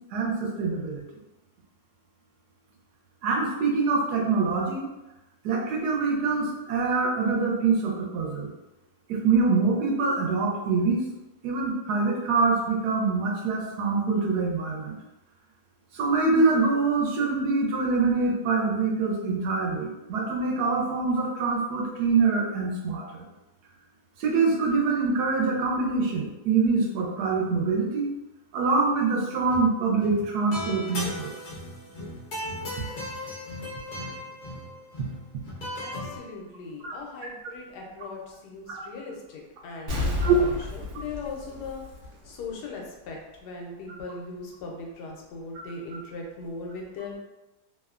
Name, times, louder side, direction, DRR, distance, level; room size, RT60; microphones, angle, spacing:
voice 1, 0.1-1.0 3.2-4.9 5.4-8.5 9.1-11.0 11.4-15.0 15.9-23.3 24.2-28.1 28.5-31.3 35.0-35.1 36.8-36.9 38.7-38.8 40.2-40.4, right 4 dB, 80° right, 0 dB, 1.1 m, -25 dB
sound 1, 29.4-29.7 30.0-36.2, left 1 dB, 60° left, 0.5 m, -37 dB
voice 2, 35.8-41.8 42.2-47.2, left 3 dB, 90° left, 0 dB, 1.2 m, -39 dB
Explosion, 39.9-42.5 42.8-42.9, left 2 dB, 60° right, 0.8 m, -31 dB
2.9 x 2.1 x 2.3 m, 1.0 s
omnidirectional pair, 1.7 m